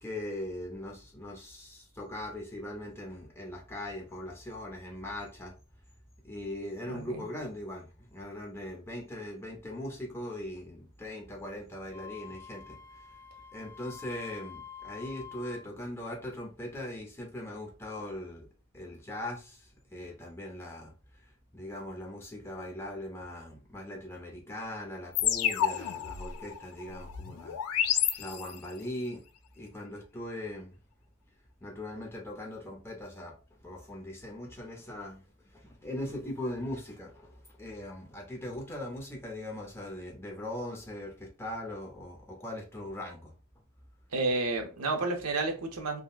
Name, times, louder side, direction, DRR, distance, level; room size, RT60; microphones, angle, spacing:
voice 1, 0.0-5.5 6.2-13.2 13.5-18.5 18.7-20.9 21.2-29.2 29.5-30.8 31.6-33.3 33.6-43.3, left 1 dB, 10° left, 0.6 m, -40 dB
voice 2, 6.9-7.3 44.1-46.0, right 3 dB, 90° right, 0.7 m, -31 dB
Wind instrument woodwind instrument, 11.9-15.6, left 7 dB, 5° right, 1.1 m, -47 dB
sound 1, 25.2-28.8, left 10 dB, 80° left, 0.3 m, -30 dB
3.5 x 2.1 x 2.4 m
head